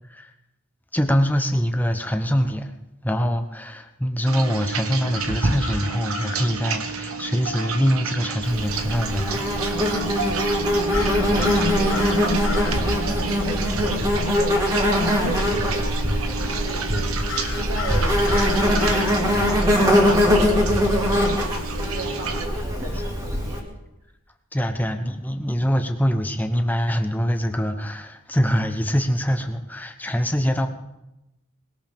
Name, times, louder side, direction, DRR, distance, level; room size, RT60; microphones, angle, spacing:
voice 1, 0.9-2.7 3.0-9.4 24.5-30.7, equal, 10° left, 6 dB, 1.0 m, -24 dB
sound 1, 4.3-22.5, right 4 dB, 90° right, 1.4 m, -30 dB
sound 2, 5.1-6.5 10.9-12.8 17.3-19.2, left 6 dB, 70° left, 1.8 m, -33 dB
Insect, 8.4-23.6, left 1 dB, 15° right, 2.5 m, -22 dB
voice 2, 11.2-14.1 14.4-17.2 17.6-23.7, right 2 dB, 70° right, 0 dB, 2.5 m, -35 dB
20.5 x 18.5 x 3.6 m, 0.93 s
head